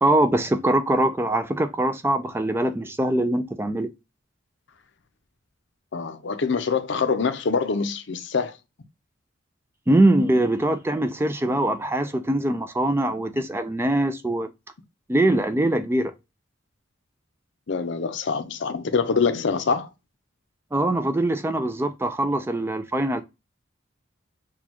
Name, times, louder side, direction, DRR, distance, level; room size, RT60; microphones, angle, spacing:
voice 1, 0.0-3.9 9.9-14.5 15.1-16.1 20.7-23.2, right 1 dB, 10° right, 0.3 m, -22 dB
voice 2, 5.9-8.6 17.7-19.9, left 5 dB, 65° left, 0.6 m, -25 dB
6.1 x 2.3 x 2.8 m
head